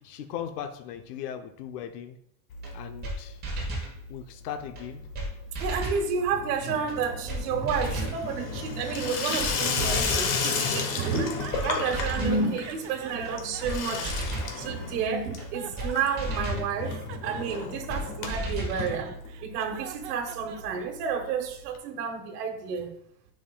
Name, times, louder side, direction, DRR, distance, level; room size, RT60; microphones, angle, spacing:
voice 1, 0.0-2.2 2.7-3.4 4.1-5.0 9.8-10.1 18.7-18.9, left 9 dB, 75° left, 6 dB, 0.8 m, -38 dB
Water tap faucet / Sink (filling or washing), 2.5-3.3 3.5-4.1 4.4-19.7 20.0-20.1 20.3-20.4 20.6-20.7 21.7-21.8, left 4 dB, 60° left, 1.6 m, -33 dB
sound 1, 2.6-2.7 3.0-3.2 3.4-3.9 4.8-4.9 5.1-5.3 5.5-6.0 6.9-7.0 7.3-7.4 7.7-8.2 9.0-9.1 9.4-9.5 9.8-10.3 11.1-11.2 11.5-11.7 11.9-12.4 13.2-13.3 13.6-13.8 14.0-14.5 15.4-15.5 15.8-15.9 16.2-16.7 17.5-17.6 17.9-18.0 18.3-18.8, right 1 dB, 20° right, 1.5 m, -33 dB
voice 2, 5.6-11.3 11.6-14.1 14.6-19.1 19.4-22.9, right 6 dB, 75° right, 3 dB, 1.3 m, -30 dB
sound 2, 11.0-12.2 12.6-14.7 15.2-16.4 16.8-21.1, right 10 dB, 45° right, 0.6 m, -43 dB
10.0 x 5.4 x 2.3 m, 0.72 s
supercardioid pair, 175°, 48 cm